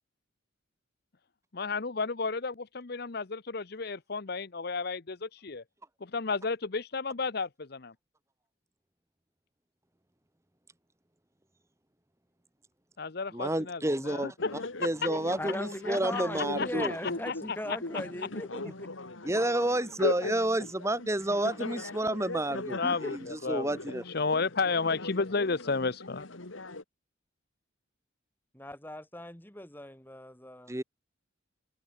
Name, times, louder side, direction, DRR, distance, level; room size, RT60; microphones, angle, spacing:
voice 1, 1.5-5.6 6.0-7.9 13.0-14.5 16.1-17.8 22.8-23.7 24.1-26.3, left 4 dB, 50° left, 0.8 m, -32 dB
voice 2, 13.3-14.3 14.8-16.9 18.6-18.7 19.2-24.0 30.7-30.8, right 1 dB, 15° right, 1.3 m, -30 dB
sound 1, 14.4-26.8, left 2 dB, 75° left, 2.4 m, -39 dB
voice 3, 15.4-18.9 20.2-20.3 22.8-23.1 28.5-30.7, left 1 dB, 10° left, 2.1 m, -39 dB
open air
head